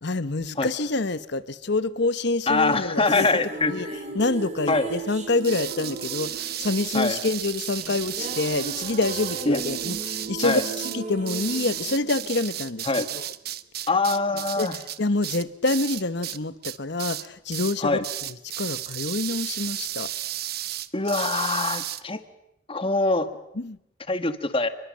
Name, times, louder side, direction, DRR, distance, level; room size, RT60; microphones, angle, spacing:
voice 1, 0.0-3.3 3.6-3.9 4.1-13.3 14.6-18.0 18.6-20.1 23.6-23.8, left 2 dB, 60° left, 1.1 m, -27 dB
voice 2, 2.5-4.0 4.7-4.9 6.9-7.2 9.5-9.6 10.4-10.6 12.9-13.1 13.9-14.8 17.8-18.0 20.9-22.2 22.7-23.3 24.1-24.7, left 3 dB, 30° left, 1.5 m, -24 dB
sound 1, 2.6-13.0, right 3 dB, 40° right, 3.3 m, -37 dB
sound 2, 5.4-16.4 16.6-17.3 17.5-17.8 18.0-22.0, right 12 dB, 55° right, 0.9 m, -33 dB
28.5 x 22.0 x 7.5 m
head